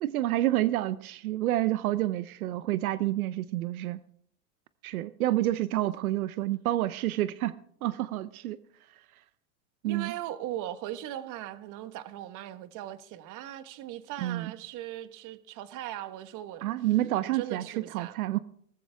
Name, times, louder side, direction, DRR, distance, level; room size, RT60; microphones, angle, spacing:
voice 1, 0.0-4.0 4.8-7.5 7.8-8.6 9.8-10.1 14.2-14.5 16.6-17.6 17.9-18.4, right 15 dB, 85° right, 0.8 m, -28 dB
voice 2, 9.9-16.6 17.3-18.2, right 12 dB, 45° right, 1.5 m, -39 dB
19.0 x 15.0 x 3.5 m
supercardioid pair, 115°, 42 cm